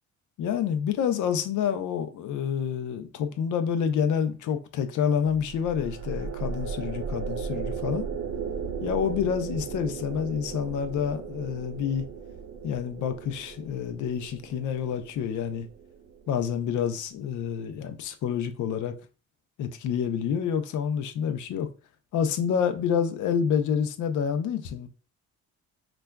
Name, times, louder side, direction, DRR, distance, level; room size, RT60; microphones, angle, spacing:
voice 1, 0.4-8.0 8.8-12.0 12.6-15.7 16.3-18.9 19.6-21.7 22.1-24.9, left 7 dB, 75° left, 0.6 m, -28 dB
sound 1, 5.3-16.7, right 6 dB, 60° right, 0.8 m, -36 dB
4.9 x 2.2 x 2.3 m
cardioid pair, 90°, 30 cm